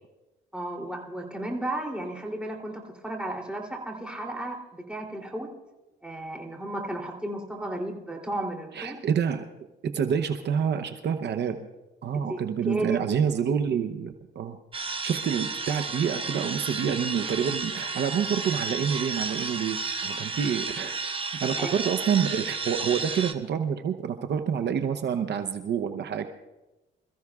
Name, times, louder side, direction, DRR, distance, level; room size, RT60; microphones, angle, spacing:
voice 1, 0.5-5.5 6.0-9.0 12.1-12.4 12.7-13.0 13.4-13.5 21.6-21.7, right 1 dB, 5° right, 1 dB, 3.0 m, -34 dB
voice 2, 8.7-9.5 9.9-11.7 12.0-14.6 14.9-20.9 21.4-26.3, right 7 dB, 60° right, 7 dB, 0.8 m, -28 dB
sound 1, 14.7-23.3, right 4 dB, 25° right, 1.1 m, -32 dB
26.5 x 14.5 x 2.4 m, 1.0 s
cardioid pair, 90°, 20 cm